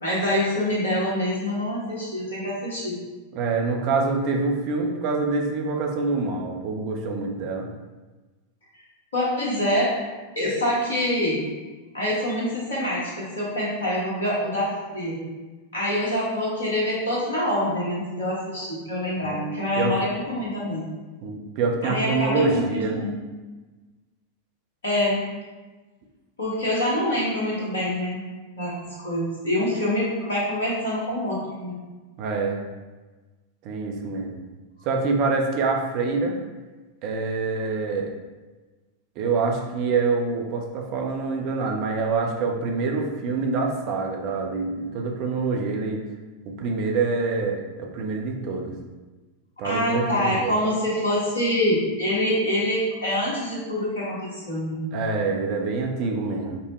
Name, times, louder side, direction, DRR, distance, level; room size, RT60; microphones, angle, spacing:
voice 1, 0.0-3.0 9.1-9.9 10.3-11.4 11.9-15.3 15.7-20.8 21.8-23.1 24.8-25.2 26.4-28.2 28.5-31.8 49.6-54.8, left 1 dB, 70° left, -6 dB, 1.3 m, -25 dB
voice 2, 3.3-7.7 19.2-19.9 21.2-23.0 32.2-32.6 33.6-34.4 34.8-36.3 37.0-38.1 39.2-46.0 46.5-48.7 49.6-50.6 54.9-56.6, right 4 dB, 45° right, 1 dB, 0.6 m, -26 dB
5.3 x 2.1 x 3.1 m, 1.3 s
figure-of-eight pair, 90°, 0 cm